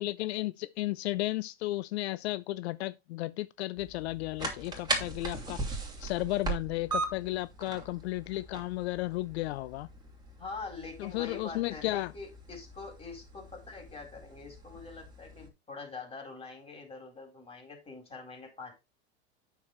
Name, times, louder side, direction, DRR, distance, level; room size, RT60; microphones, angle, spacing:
voice 1, 0.0-5.6 6.0-9.9 11.0-12.1, left 18 dB, 70° left, 0.5 m, -34 dB
sound 1, 3.8-15.5, right 3 dB, 10° right, 2.6 m, -39 dB
voice 2, 10.4-18.7, left 4 dB, 15° left, 4.2 m, -44 dB
8.8 x 6.9 x 3.2 m
supercardioid pair, 120°, 33 cm